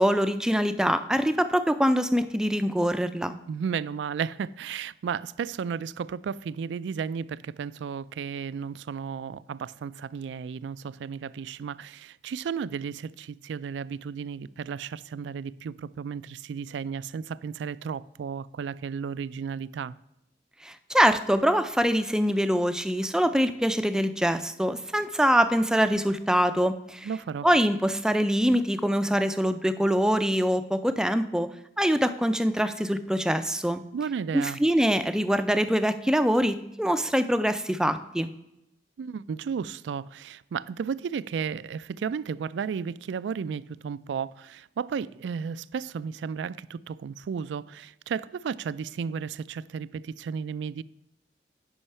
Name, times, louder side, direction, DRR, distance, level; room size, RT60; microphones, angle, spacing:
voice 1, 0.0-3.4 20.6-27.1 27.4-31.5 31.8-33.8 34.3-38.3, equal, 5° right, 0.3 m, -24 dB
voice 2, 3.5-20.0 27.0-27.5 33.9-34.6 39.0-50.8, right 6 dB, 90° right, 0.3 m, -33 dB
9.9 x 5.5 x 5.5 m
head